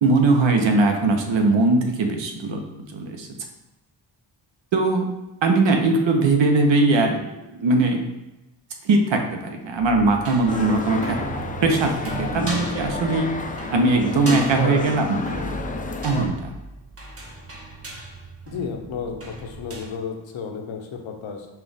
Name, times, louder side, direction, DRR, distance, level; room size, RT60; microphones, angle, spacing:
voice 1, 0.0-2.6 2.9-3.3 4.7-5.1 5.4-7.3 7.6-8.0 8.8-11.2 11.6-13.3 13.7-15.2 16.0-16.5, right 3 dB, 70° right, 4 dB, 0.9 m, -20 dB
sound 1, 10.2-19.9, right 2 dB, 30° right, 0.9 m, -35 dB
sound 2, 10.5-16.3, left 4 dB, 20° left, 0.4 m, -31 dB
voice 2, 14.2-15.0 18.5-21.5, left 5 dB, 75° left, 3 dB, 0.8 m, -32 dB
5.6 x 2.4 x 4.0 m, 0.99 s
cardioid pair, 95°, 46 cm